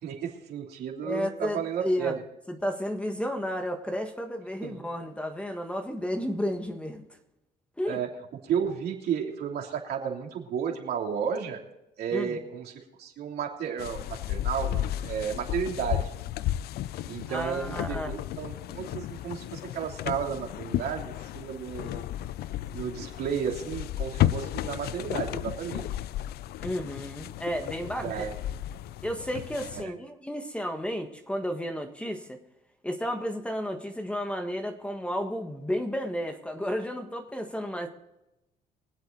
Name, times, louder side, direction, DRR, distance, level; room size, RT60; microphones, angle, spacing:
voice 1, 0.0-2.2 4.6-4.8 7.9-8.1 8.4-11.6 12.0-12.7 13.0-16.1 17.1-22.1 22.7-25.9 28.0-28.3 29.7-29.9, right 7 dB, 70° right, 1 dB, 3.1 m, -33 dB
voice 2, 1.0-2.1 2.5-7.0 7.8-8.0 12.1-12.4 17.3-18.1 26.6-28.2 29.0-32.4 32.8-37.9, equal, 5° left, 5 dB, 1.6 m, -32 dB
sound 1, 13.8-29.8, left 13 dB, 70° left, 0.5 m, -33 dB
24.0 x 8.0 x 4.0 m, 0.92 s
cardioid pair, 110°, 17 cm